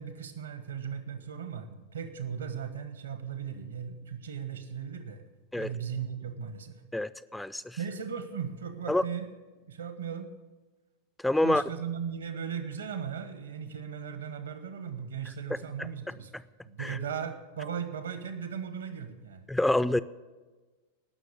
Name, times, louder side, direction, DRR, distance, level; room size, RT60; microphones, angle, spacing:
voice 1, 0.0-5.2 5.5-6.8 7.8-9.3 9.7-10.3 11.4-16.3 16.6-19.5, right 7 dB, 70° right, 10 dB, 1.3 m, -37 dB
voice 2, 6.9-7.8 8.9-9.0 11.2-11.6 15.5-15.9 16.8-17.0 19.5-20.0, left 1 dB, 5° left, 16 dB, 0.4 m, -27 dB
17.0 x 6.4 x 8.5 m, 1.3 s
figure-of-eight pair, 90°, 0 cm